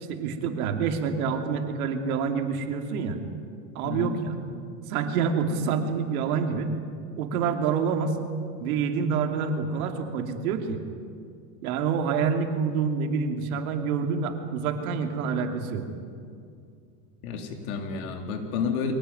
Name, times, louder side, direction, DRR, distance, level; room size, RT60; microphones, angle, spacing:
voice 1, 0.1-3.2 3.7-4.3 4.9-6.7 7.2-8.1 8.6-10.8 11.6-15.8, right 6 dB, 80° right, 5 dB, 2.9 m, -27 dB
voice 2, 3.8-4.2 17.2-18.9, left 6 dB, 75° left, 4 dB, 3.5 m, -30 dB
23.0 x 17.0 x 9.3 m, 2.4 s
supercardioid pair, 160°, 43 cm